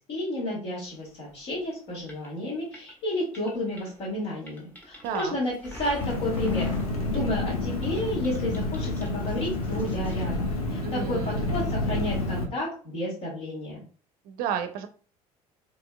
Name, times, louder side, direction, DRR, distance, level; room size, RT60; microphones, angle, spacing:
voice 1, 0.1-6.7 7.0-13.8, left 1 dB, 50° left, -8 dB, 1.9 m, -31 dB
sound 1, 1.3-7.5 7.8-10.1, equal, 10° left, 1.3 m, -44 dB
voice 2, 5.0-5.3 10.8-11.5 14.3-14.9, right 8 dB, 50° right, 9 dB, 0.5 m, -32 dB
Engine, 6.0-12.4, left 2 dB, 75° left, 0.7 m, -29 dB
4.3 x 3.1 x 2.3 m, 0.40 s
figure-of-eight pair, 60°, 19 cm